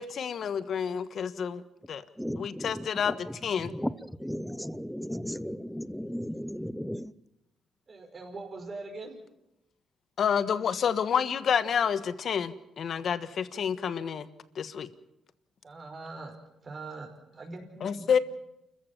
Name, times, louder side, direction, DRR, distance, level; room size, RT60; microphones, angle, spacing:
voice 1, 0.0-1.6 1.9-2.0 2.4-3.2 3.4-3.7 10.2-14.3 14.5-14.9 17.8-18.2, left 7 dB, 55° left, 1.4 m, -29 dB
voice 2, 2.2-3.1 3.7-7.1, equal, ahead, 0.8 m, -35 dB
voice 3, 7.9-9.2 15.6-16.3 16.6-18.1, right 3 dB, 35° right, 5.4 m, -42 dB
29.5 x 14.5 x 7.4 m
cardioid pair, 90°, 0 cm